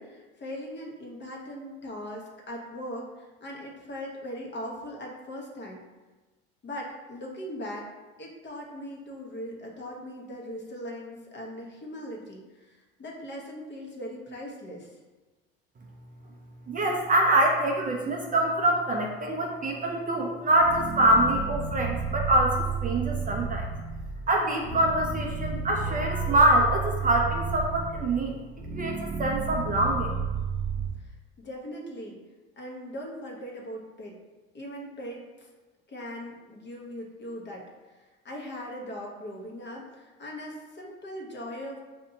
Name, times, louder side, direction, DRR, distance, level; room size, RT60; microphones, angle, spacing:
voice 1, 0.0-5.8 6.6-7.9 8.2-14.9 31.0-31.1 31.4-32.2 32.6-34.1 34.5-35.5 35.9-37.7 38.2-41.8, equal, 35° left, -1 dB, 1.0 m, -39 dB
voice 2, 16.7-23.7 24.3-28.4 28.7-30.1, right 1 dB, 30° right, 1 dB, 0.5 m, -25 dB
sound 1, 20.6-30.9, right 5 dB, 85° right, 0.7 m, -32 dB
4.2 x 2.6 x 2.7 m, 1.2 s
hypercardioid pair, 75°, 30 cm